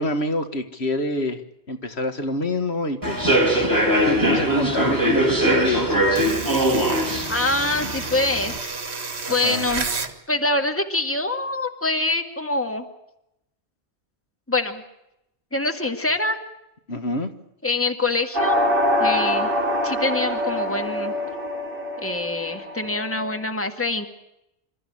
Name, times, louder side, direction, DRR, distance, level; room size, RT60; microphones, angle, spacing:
voice 1, 0.0-1.4 1.7-6.1 9.3-9.7 16.9-17.3, left 1 dB, 75° left, 8 dB, 2.0 m, -27 dB
Human voice / Subway metro underground, 3.0-8.6, right 1 dB, 20° right, 4.2 m, -21 dB
sound 1, 6.1-10.1, right 4 dB, 70° right, 1.9 m, -31 dB
voice 2, 7.3-9.9 10.3-12.9 14.5-14.8 15.5-16.4 17.6-18.6 19.0-19.5 19.8-21.1 22.0-24.1, left 2 dB, 10° left, 6 dB, 1.9 m, -25 dB
sound 2, 18.3-23.3, left 1 dB, 50° right, 3.8 m, -24 dB
27.0 x 14.0 x 8.7 m, 0.86 s
omnidirectional pair, 1.1 m